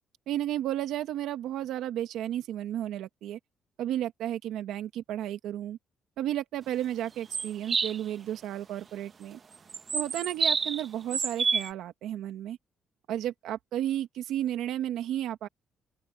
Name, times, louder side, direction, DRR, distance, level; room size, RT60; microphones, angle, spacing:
voice 1, 0.3-3.4 3.8-5.8 6.2-9.4 9.9-12.6 13.1-15.5, right 12 dB, 85° right, 1.6 m, -33 dB
sound 1, 7.3-8.0 9.7-10.9 11.1-11.7, right 5 dB, 40° right, 0.9 m, -28 dB
open air
cardioid pair, 90°, 0 cm